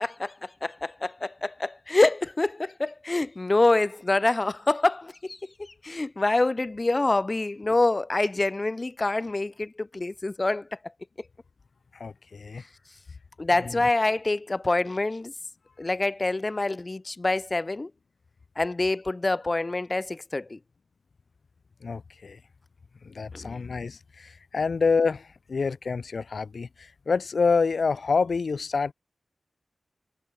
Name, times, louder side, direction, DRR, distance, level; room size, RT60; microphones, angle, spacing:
voice 1, 0.0-10.7 13.4-15.3 15.8-17.9 18.6-20.6 23.3-23.6, left 2 dB, 35° left, 1.1 m, -26 dB
voice 2, 11.9-12.6 13.6-13.8 21.8-22.4 23.0-28.9, left 4 dB, 75° left, 1.8 m, -27 dB
wide cardioid pair, 80°, 0 cm